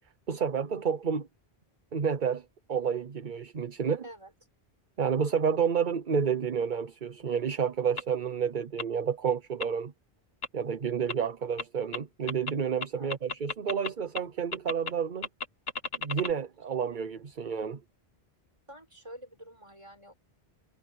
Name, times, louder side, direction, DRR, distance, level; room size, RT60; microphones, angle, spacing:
voice 1, 0.3-1.3 1.9-2.4 2.7-4.0 5.0-9.9 10.5-15.3 16.0-17.8, right 7 dB, 50° right, 1.0 m, -30 dB
voice 2, 4.0-4.3 12.9-13.1 18.7-20.1, equal, 30° right, 6.1 m, -47 dB
sound 1, 8.0-8.1 8.8-8.9 9.6-9.7 10.4-10.5 11.1-11.2 11.6-11.7 11.9-12.0 12.3-12.5 12.8-13.9 14.1-14.2 14.5-14.9 15.2-16.3, left 3 dB, 70° left, 2.1 m, -33 dB
omnidirectional pair, 1.1 m